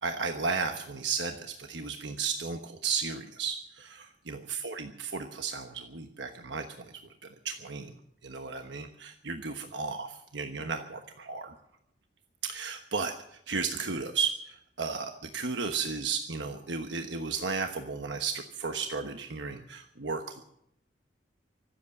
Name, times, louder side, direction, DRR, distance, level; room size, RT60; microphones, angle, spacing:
voice 1, 0.0-7.0 7.4-7.9 8.2-11.5 12.4-13.1 13.5-20.4, right 5 dB, 80° right, 5 dB, 1.2 m, -34 dB
24.5 x 8.3 x 7.1 m, 0.75 s
head